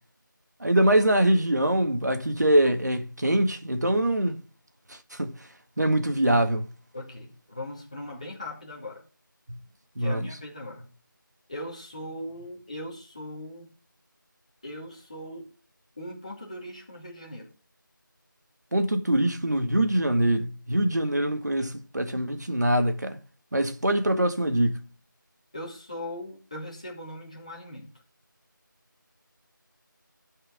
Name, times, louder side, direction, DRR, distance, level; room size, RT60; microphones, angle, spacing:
voice 1, 0.6-4.4 4.9-5.3 5.8-6.7 10.0-10.3 18.7-23.2 23.5-24.8, right 1 dB, 55° right, 1.8 m, -23 dB
voice 2, 6.9-9.0 10.0-10.9 11.5-13.7 14.6-15.5 16.0-17.5 25.5-27.9, left 1 dB, 20° left, 2.5 m, -39 dB
12.0 x 5.6 x 6.2 m
figure-of-eight pair, 175°, 11 cm